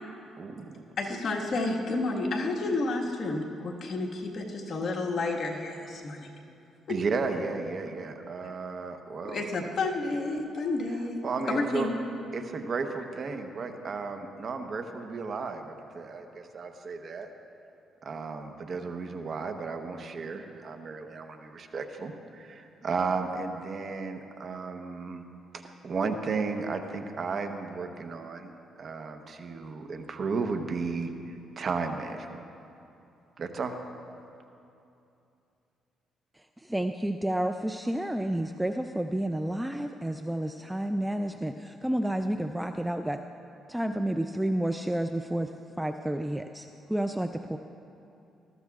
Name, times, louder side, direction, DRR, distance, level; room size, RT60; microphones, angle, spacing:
voice 1, 0.4-0.7 6.9-9.4 11.2-11.9 12.3-17.3 18.0-25.2 25.5-28.5 28.8-32.4 33.4-33.7, right 4 dB, 50° right, 5 dB, 0.9 m, -34 dB
voice 2, 1.0-6.3 6.9-7.0 9.2-11.9, left 2 dB, 50° left, -1 dB, 1.5 m, -30 dB
voice 3, 36.4-43.2 43.7-45.5 45.8-47.6, right 1 dB, 5° right, 7 dB, 0.4 m, -30 dB
20.0 x 13.5 x 2.4 m, 2.7 s
cardioid pair, 90°, 0 cm